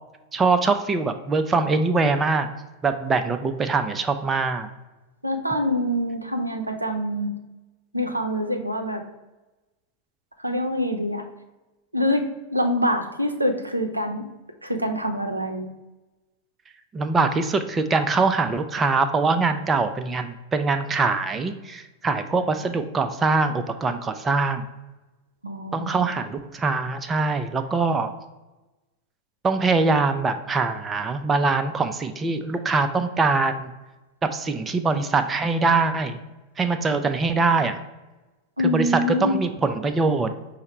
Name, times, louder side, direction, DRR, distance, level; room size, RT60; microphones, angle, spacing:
voice 1, 0.3-2.5 2.8-4.7 16.9-24.6 25.7-28.1 29.4-33.7 34.2-36.2 36.6-37.8 38.6-38.9 39.2-40.3, right 4 dB, 20° right, 8 dB, 0.3 m, -23 dB
voice 2, 5.2-7.3 7.9-9.0 10.4-11.2 11.9-14.2 14.6-15.7 25.4-26.1 38.6-39.4, equal, 85° right, 4 dB, 0.5 m, -25 dB
5.5 x 2.0 x 4.3 m, 1.1 s
figure-of-eight pair, 90°, 0 cm